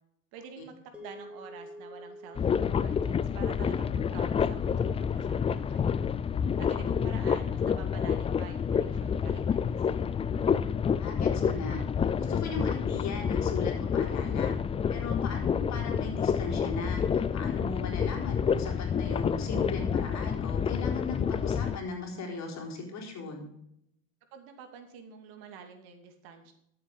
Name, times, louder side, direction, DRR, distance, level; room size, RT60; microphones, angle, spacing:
voice 1, 0.3-6.0 6.6-10.1 24.3-26.5, right 6 dB, 60° right, 6 dB, 2.5 m, -48 dB
sound 1, 0.9-9.2, equal, 5° right, 2.8 m, -51 dB
sound 2, 2.4-21.8, left 7 dB, 15° left, 0.4 m, -28 dB
voice 2, 11.0-11.8 12.2-14.5 14.9-23.5, left 4 dB, 40° left, 2 dB, 3.9 m, -37 dB
12.5 x 7.7 x 5.3 m, 0.74 s
supercardioid pair, 105°, 41 cm